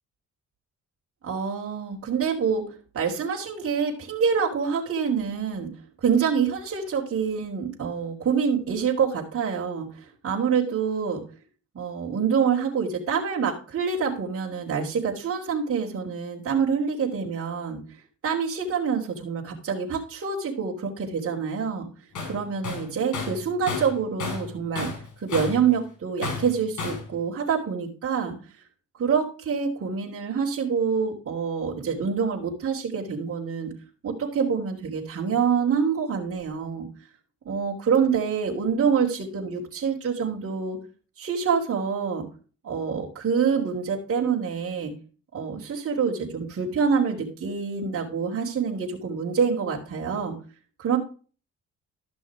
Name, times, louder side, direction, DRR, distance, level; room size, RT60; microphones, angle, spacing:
voice 1, 1.2-2.7 2.9-5.7 6.0-11.2 11.7-17.8 18.2-21.9 22.2-24.9 25.2-28.4 29.0-33.7 34.0-36.9 37.4-40.8 41.2-42.3 42.6-44.9 45.3-50.4 50.8-51.0, right 6 dB, 50° right, -5 dB, 3.6 m, -26 dB
Tools, 22.2-22.4 22.6-24.5 24.8-25.7 26.2-27.1, left 4 dB, 70° left, 4.1 m, -32 dB
13.5 x 6.1 x 4.8 m, 0.37 s
cardioid pair, 100°, 31 cm